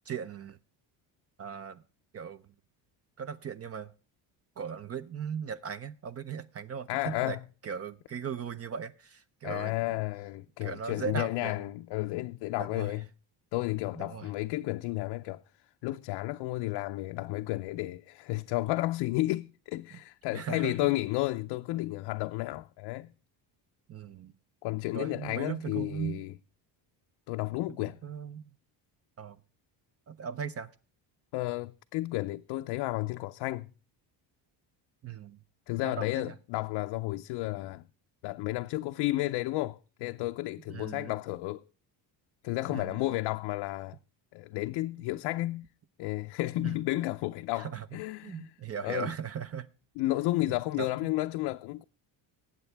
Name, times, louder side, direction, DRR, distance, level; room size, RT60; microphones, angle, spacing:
voice 1, 0.1-0.6 1.4-1.8 2.1-2.4 3.2-3.9 4.6-7.4 7.6-9.7 10.6-11.7 12.6-12.9 14.0-14.3 20.3-20.7 23.9-24.3 24.9-26.2 27.8-28.4 29.2-29.4 30.1-30.7 35.0-35.4 35.8-36.2 40.7-41.1 42.7-43.0 46.6-46.8 47.5-47.9 48.2-49.7 50.8-50.9, right 7 dB, 35° right, 0.5 m, -38 dB
voice 2, 6.9-7.4 9.4-13.1 13.5-15.4 15.8-23.1 24.6-26.3 27.3-28.0 31.3-33.7 35.7-37.8 38.2-41.6 42.4-44.0 44.3-45.7 46.0-48.5 48.8-49.1 50.0-51.8, left 18 dB, 75° left, 0.6 m, -32 dB
19.5 x 8.1 x 3.4 m
cardioid pair, 130°, 44 cm